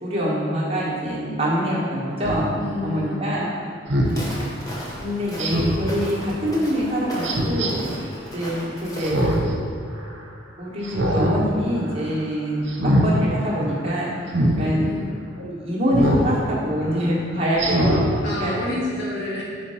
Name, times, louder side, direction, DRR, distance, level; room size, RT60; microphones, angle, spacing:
voice 1, 0.0-2.5 2.8-3.5 5.0-7.8 8.3-9.2 10.6-14.1 14.6-14.8 15.4-18.5, equal, 30° right, -7 dB, 1.2 m, -25 dB
Speech synthesizer, 2.2-2.4 3.9-4.2 5.4-5.9 7.2-7.7 9.0-9.5 9.9-10.0 10.8-11.4 11.7-12.0 12.7-13.1 14.3-14.6 15.9-16.3 16.8-16.9 17.6-18.1 18.5-18.6, right 1 dB, 70° right, 0.8 m, -22 dB
voice 2, 2.6-3.3 14.3-15.2 18.2-19.4, left 2 dB, 65° left, -6 dB, 1.6 m, -30 dB
Walk footsteps, 4.0-9.4, equal, 20° left, 1.0 m, -36 dB
4.6 x 4.4 x 5.6 m, 2.2 s
head